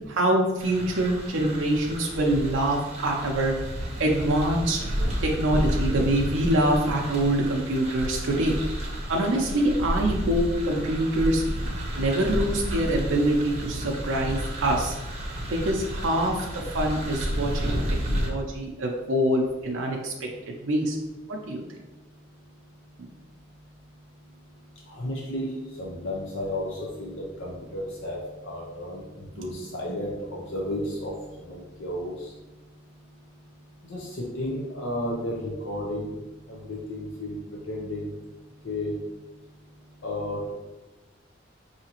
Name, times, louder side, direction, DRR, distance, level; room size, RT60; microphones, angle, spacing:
voice 1, 0.1-3.5 4.0-4.8 5.2-8.5 9.1-11.4 12.0-14.9 15.5-21.0 21.3-21.6, right 1 dB, 90° right, 0 dB, 0.5 m, -25 dB
sound 1, 0.6-18.3, equal, 35° right, 0.7 m, -31 dB
voice 2, 24.9-25.5 25.8-28.2 28.4-29.0 29.4-31.1 31.5-32.1 33.9-36.2 36.5-37.3 37.7-38.1 38.6-38.9 40.0-40.5, left 1 dB, 80° left, -2 dB, 0.7 m, -32 dB
4.8 x 2.8 x 2.9 m, 1.1 s
head